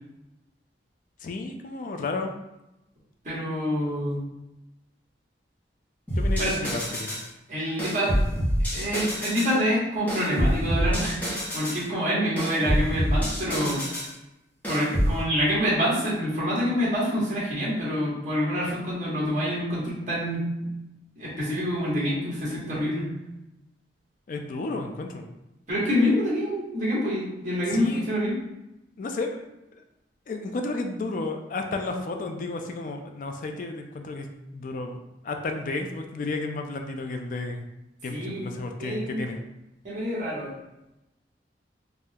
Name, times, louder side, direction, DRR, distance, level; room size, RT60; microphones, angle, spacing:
voice 1, 1.2-2.3 6.2-7.2 24.3-25.3 27.7-28.1 29.0-29.4 29.7-29.8 30.3-34.3 34.5-37.7 38.0-39.4, left 3 dB, 45° left, 4 dB, 0.3 m, -32 dB
voice 2, 3.2-4.2 6.4-6.5 7.5-8.2 8.7-13.8 14.7-20.5 21.2-23.1 25.7-28.3 38.1-38.5 38.8-39.2 39.8-40.5, equal, 45° right, -7 dB, 1.2 m, -26 dB
sound 1, 6.1-7.3 7.8-9.5 10.1-11.8 12.4-14.1 14.6-15.2, equal, 10° left, 0.8 m, -26 dB
3.5 x 2.1 x 2.7 m, 0.94 s
head